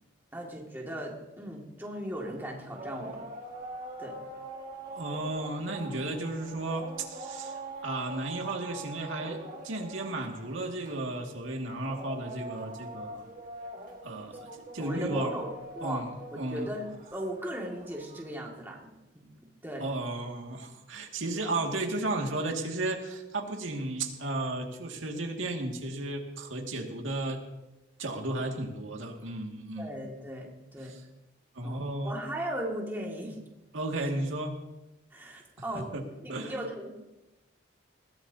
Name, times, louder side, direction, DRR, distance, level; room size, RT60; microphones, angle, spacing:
voice 1, 0.3-3.3 4.0-4.2 14.3-14.4 14.8-16.0 16.3-19.2 19.6-19.9 29.8-30.9 31.6-33.4 35.1-35.9 36.2-36.9, equal, 10° right, -2 dB, 2.1 m, -37 dB
sound 1, 2.0-18.4, right 2 dB, 40° right, 1.8 m, -44 dB
voice 2, 4.9-13.2 14.0-14.5 14.7-15.3 15.8-16.7 19.8-27.4 28.0-30.0 30.8-31.0 31.5-32.2 33.7-34.6 35.9-36.0 36.3-36.5, right 2 dB, 85° right, 1 dB, 2.1 m, -34 dB
21.0 x 16.0 x 2.8 m, 0.98 s
head